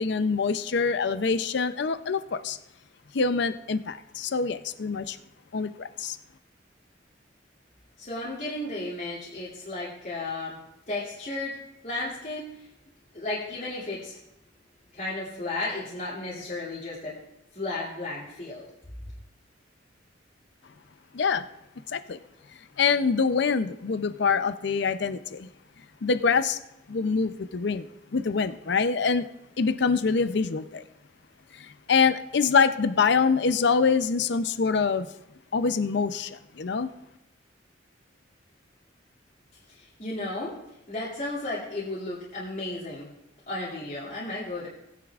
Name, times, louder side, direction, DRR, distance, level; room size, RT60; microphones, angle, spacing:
voice 1, 0.0-2.6 3.1-5.2 5.5-6.2 21.1-21.5 21.9-22.2 22.8-25.5 26.0-26.6 26.9-27.9 28.1-29.3 29.6-30.8 31.5-35.1 35.5-36.9, left 5 dB, 65° left, 12 dB, 0.5 m, -25 dB
voice 2, 8.0-10.6 10.9-11.6 11.8-12.7 13.1-14.1 14.9-17.2 17.5-18.6 39.7-40.6 40.9-43.1 43.5-44.7, left 2 dB, 45° left, -9 dB, 2.7 m, -34 dB
19.0 x 9.4 x 2.4 m, 0.84 s
head